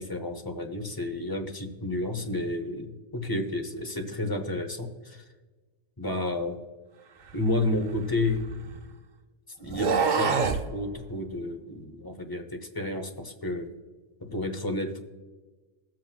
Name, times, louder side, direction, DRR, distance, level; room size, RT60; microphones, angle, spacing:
voice 1, 0.0-5.3 6.0-6.6 7.3-8.5 9.6-13.7 14.2-15.0, left 2 dB, 20° left, 5 dB, 0.8 m, -31 dB
sound 1, 7.4-8.9 9.6-10.7, right 5 dB, 50° right, 0.6 m, -27 dB
20.5 x 7.7 x 2.3 m, 1.3 s
omnidirectional pair, 1.3 m